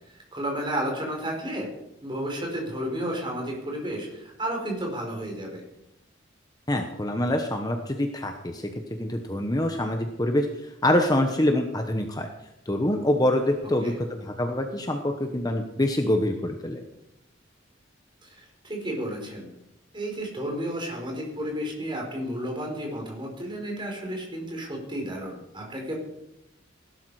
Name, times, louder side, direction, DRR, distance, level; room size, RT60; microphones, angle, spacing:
voice 1, 0.3-1.7 2.0-5.6 13.8-14.0 18.2-19.5 19.9-25.9, right 1 dB, 25° right, 0 dB, 4.5 m, -32 dB
voice 2, 6.7-8.7 9.0-12.3 12.7-16.8, left 1 dB, 20° left, 4 dB, 1.1 m, -25 dB
17.5 x 12.0 x 4.9 m, 0.84 s
head